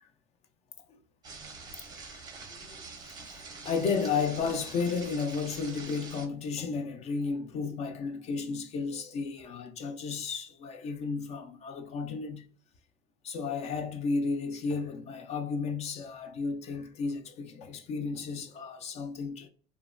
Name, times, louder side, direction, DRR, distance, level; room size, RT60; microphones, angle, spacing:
sound 1, 1.2-6.3, right 4 dB, 25° right, 0.6 m, -45 dB
voice 1, 1.9-12.5 13.2-19.5, left 5 dB, 40° left, 0.4 m, -33 dB
2.8 x 2.2 x 2.5 m
cardioid pair, 135°, 18 cm